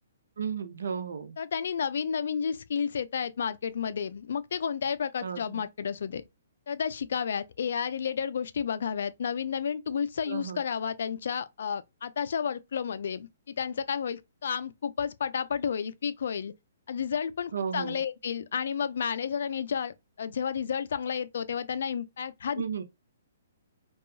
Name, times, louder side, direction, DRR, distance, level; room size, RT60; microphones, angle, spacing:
voice 1, 0.4-1.3 5.2-5.6 10.3-10.6 17.5-18.0 22.6-22.8, right 6 dB, 80° right, 0.6 m, -34 dB
voice 2, 1.4-6.2 6.7-16.5 16.9-22.6, left 7 dB, 70° left, 0.3 m, -31 dB
2.7 x 2.3 x 2.5 m
hypercardioid pair, 155°, 0 cm